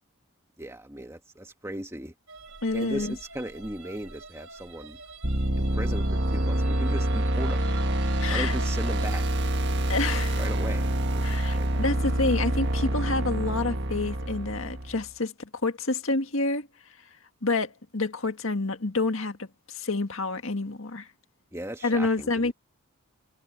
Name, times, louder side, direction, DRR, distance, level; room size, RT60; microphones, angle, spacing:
voice 1, 0.6-2.1 2.7-5.0 5.5-7.7 8.3-9.2 10.4-11.8 21.5-22.5, right 1 dB, 10° right, 2.0 m, -37 dB
sound 1, 2.3-11.2, right 3 dB, 70° right, 3.6 m, -46 dB
voice 2, 2.6-3.1 8.2-8.5 9.9-10.4 11.2-16.7 17.4-21.1 21.8-22.5, left 3 dB, 65° left, 1.9 m, -28 dB
sound 2, 5.2-15.1, right 1 dB, 50° right, 1.7 m, -26 dB
head